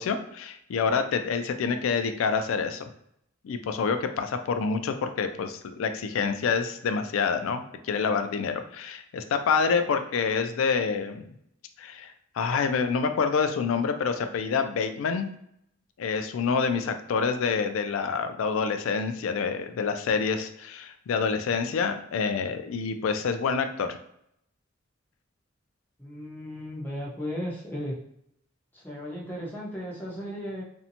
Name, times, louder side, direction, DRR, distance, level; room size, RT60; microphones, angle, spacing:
voice 1, 0.0-2.9 3.4-11.3 11.8-15.3 16.0-24.0, left 5 dB, 90° left, 8 dB, 0.3 m, -27 dB
voice 2, 26.0-27.9 28.7-30.6, equal, 10° left, -5 dB, 0.7 m, -35 dB
2.6 x 2.1 x 2.8 m, 0.74 s
head